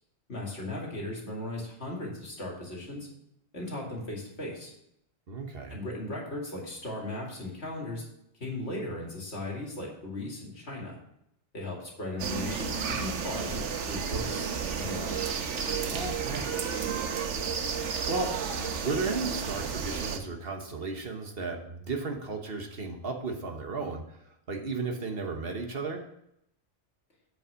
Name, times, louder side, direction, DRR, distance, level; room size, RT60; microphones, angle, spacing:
voice 1, 0.3-3.1 3.5-4.7 5.7-8.0 8.4-11.0 11.5-14.5 14.8-15.1, left 2 dB, 65° left, -2 dB, 2.6 m, -37 dB
voice 2, 5.3-5.8 15.9-16.6 18.1-18.3 18.8-26.1, right 4 dB, 55° right, 3 dB, 1.3 m, -34 dB
sound 1, 12.2-20.2, right 6 dB, 80° right, 1.2 m, -32 dB
8.1 x 5.5 x 6.2 m, 0.78 s
omnidirectional pair, 1.2 m